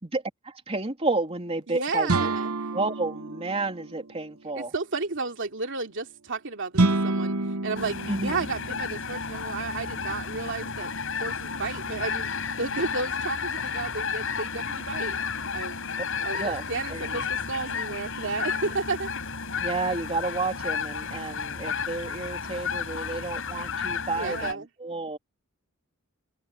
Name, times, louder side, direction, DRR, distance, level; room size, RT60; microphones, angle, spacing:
voice 1, 0.0-2.3 2.7-4.7 8.1-8.5 16.3-16.6 16.9-17.2 19.6-25.2, right 3 dB, 30° right, 3.1 m, -31 dB
voice 2, 1.7-2.7 4.5-6.7 7.0-7.4 7.6-10.9 11.2-15.2 15.5-15.9 16.2-19.1 24.2-24.7, right 3 dB, 60° right, 2.7 m, -32 dB
sound 1, 2.1-4.1 6.7-8.9, right 2 dB, 90° right, 1.1 m, -27 dB
sound 2, 7.7-24.5, left 6 dB, 65° left, 7.4 m, -32 dB
open air
head